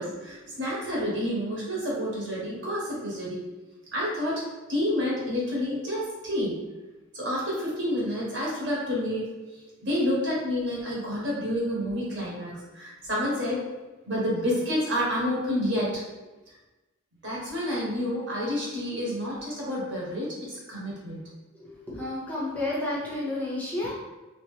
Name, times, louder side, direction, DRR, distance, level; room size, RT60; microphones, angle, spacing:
voice 1, 0.0-3.4 3.9-4.4 4.7-6.5 7.1-9.2 9.8-13.6 14.1-16.0 17.2-21.2, left 1 dB, 60° right, -5 dB, 1.3 m, -29 dB
voice 2, 21.5-23.9, left 1 dB, 10° left, -6 dB, 0.6 m, -31 dB
2.9 x 2.9 x 3.2 m, 1.1 s
head